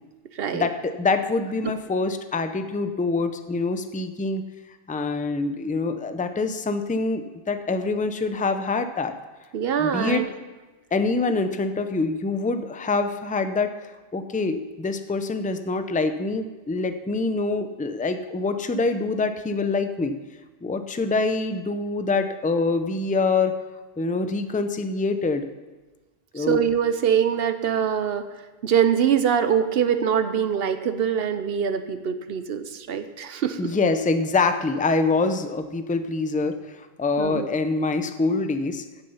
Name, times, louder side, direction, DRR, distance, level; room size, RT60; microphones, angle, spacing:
voice 1, 0.5-4.4 4.9-9.1 9.8-10.2 10.9-20.1 20.6-23.5 24.0-25.5 26.3-26.6 33.6-38.8, left 3 dB, 10° left, 9 dB, 0.4 m, -25 dB
voice 2, 9.5-10.2 26.4-28.2 28.6-33.7 37.2-37.5, right 8 dB, 70° right, 10 dB, 0.9 m, -23 dB
15.5 x 6.6 x 5.5 m, 1.2 s
omnidirectional pair, 1.1 m